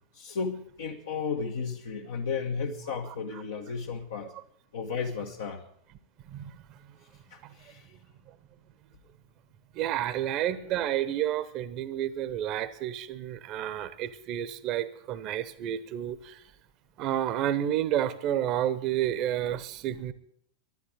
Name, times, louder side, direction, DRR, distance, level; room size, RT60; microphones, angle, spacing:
voice 1, 0.1-4.3 4.7-5.6 7.3-7.9, left 5 dB, 60° left, 1 dB, 1.3 m, -34 dB
voice 2, 6.3-6.6 7.4-7.5 9.7-16.4 17.0-20.1, right 11 dB, 40° right, 15 dB, 1.0 m, -30 dB
12.0 x 11.5 x 9.1 m, 0.70 s
figure-of-eight pair, 90°, 0 cm